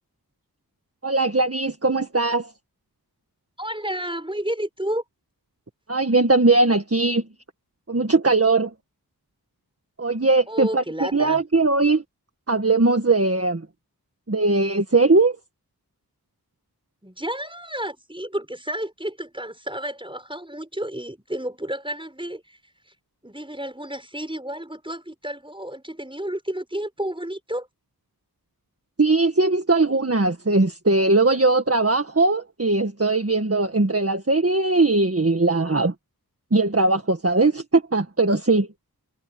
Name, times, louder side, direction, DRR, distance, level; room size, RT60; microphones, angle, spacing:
voice 1, 1.0-2.5 5.9-7.2 7.9-8.7 10.0-12.0 12.5-13.6 14.3-15.4 29.0-35.9 36.5-38.7, right 3 dB, 35° right, 1.8 m, -20 dB
voice 2, 3.6-5.0 10.5-11.4 17.0-22.6 23.2-27.7, right 1 dB, 15° right, 6.3 m, -31 dB
wide cardioid pair, 45°, 39 cm